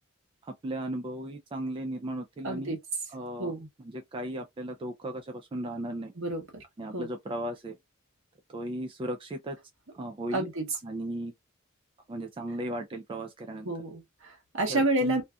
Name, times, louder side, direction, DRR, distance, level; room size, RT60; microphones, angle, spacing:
voice 1, 0.4-2.8 3.1-3.5 3.8-6.1 6.8-7.7 8.5-9.6 9.9-10.5 10.8-11.3 12.1-13.7 14.7-15.2, right 1 dB, 25° right, 0.3 m, -36 dB
voice 2, 2.4-2.8 3.4-3.7 6.2-6.6 6.9-7.1 10.3-10.6 13.6-15.2, right 1 dB, 65° right, 1.1 m, -29 dB
2.6 x 2.3 x 2.3 m
head